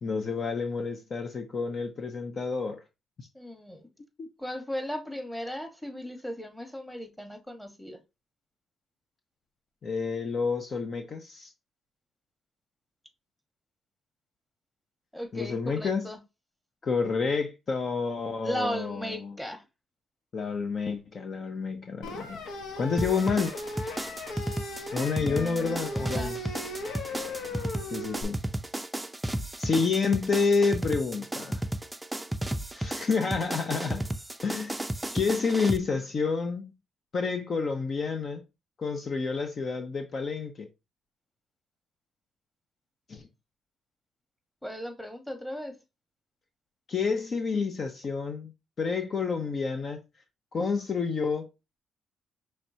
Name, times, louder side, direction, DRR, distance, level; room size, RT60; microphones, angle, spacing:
voice 1, 0.0-2.8 3.2-3.3 4.2-4.3 9.8-11.5 15.3-16.1 16.8-19.3 20.3-22.4 22.8-23.5 24.9-26.4 27.9-28.4 29.6-31.6 32.7-34.1 34.4-34.8 35.1-36.7 37.1-38.4 38.8-40.7 43.1-43.3 46.9-48.5 48.8-50.0 50.5-51.5, left 5 dB, 45° left, 0.6 m, -29 dB
voice 2, 3.3-3.8 4.4-8.0 15.1-16.2 18.4-19.6 25.2-26.3 44.6-45.7, equal, 5° left, 1.3 m, -36 dB
sound 1, 22.0-28.2, left 2 dB, 80° left, 0.9 m, -38 dB
sound 2, 23.0-35.8, right 1 dB, 10° right, 0.5 m, -33 dB
5.8 x 3.2 x 2.7 m
cardioid pair, 90°, 0 cm